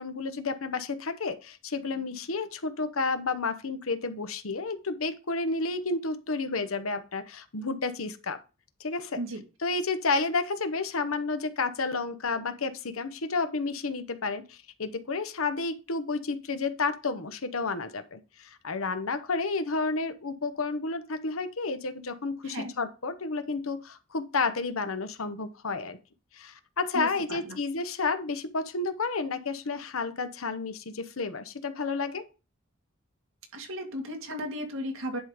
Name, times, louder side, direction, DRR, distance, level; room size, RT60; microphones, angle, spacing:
voice 1, 0.0-8.4 8.8-9.2 9.6-26.0 26.3-32.2, left 3 dB, 80° left, 11 dB, 1.0 m, -31 dB
voice 2, 26.9-27.6 33.5-35.2, equal, 70° right, 3 dB, 2.1 m, -35 dB
10.5 x 3.8 x 4.9 m, 0.31 s
head